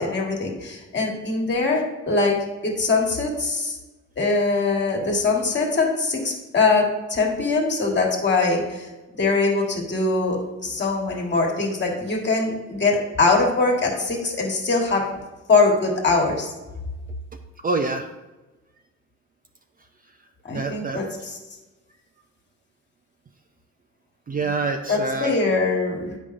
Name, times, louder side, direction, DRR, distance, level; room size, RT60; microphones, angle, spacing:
voice 1, 0.0-2.4 2.6-3.8 4.2-8.9 9.2-15.1 15.5-16.5 20.4-21.4 24.9-26.2, left 3 dB, 35° left, 0 dB, 1.6 m, -22 dB
voice 2, 17.6-18.0 20.5-21.0 24.3-25.4, right 3 dB, 30° right, 5 dB, 0.5 m, -26 dB
8.4 x 5.3 x 2.5 m, 1.1 s
cardioid pair, 90°, 30 cm